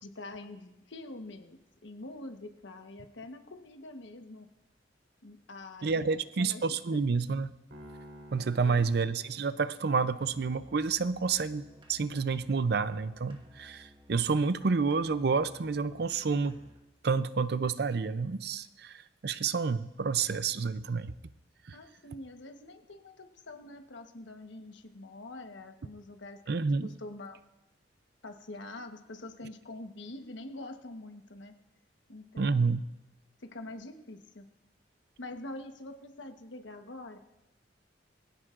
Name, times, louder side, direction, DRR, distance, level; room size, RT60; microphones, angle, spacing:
voice 1, 0.0-4.5 5.2-7.1 8.6-8.9 21.7-27.4 28.2-31.5 32.1-32.7 33.4-34.4 35.2-37.2, left 2 dB, 85° left, 6 dB, 1.2 m, -45 dB
voice 2, 5.8-7.5 8.3-16.6 17.0-21.1 21.7-21.8 26.5-26.9 32.4-32.8, right 4 dB, 60° right, 14 dB, 0.5 m, -29 dB
sound 1, 7.7-10.1, equal, 80° right, 3.4 m, -51 dB
Musical instrument, 10.2-16.9, left 1 dB, 25° right, 1.4 m, -58 dB
22.5 x 16.0 x 2.5 m, 1.0 s
head